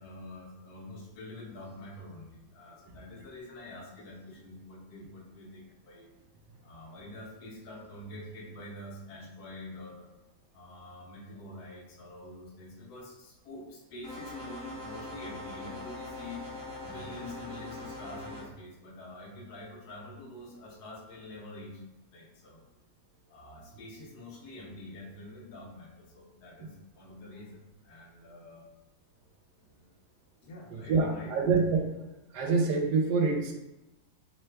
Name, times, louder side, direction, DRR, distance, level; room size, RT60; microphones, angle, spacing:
voice 1, 0.0-6.1 6.6-10.1 10.5-16.4 16.8-21.8 22.1-22.6 23.3-28.7 29.6-29.8 30.4-31.3, left 1 dB, 70° left, -1 dB, 1.2 m, -46 dB
sound 1, 14.0-18.4, left 2 dB, 45° right, 1.0 m, -42 dB
voice 2, 30.7-32.0 32.3-33.5, right 4 dB, 80° right, 2 dB, 1.2 m, -26 dB
3.1 x 2.2 x 3.3 m, 0.98 s
omnidirectional pair, 1.8 m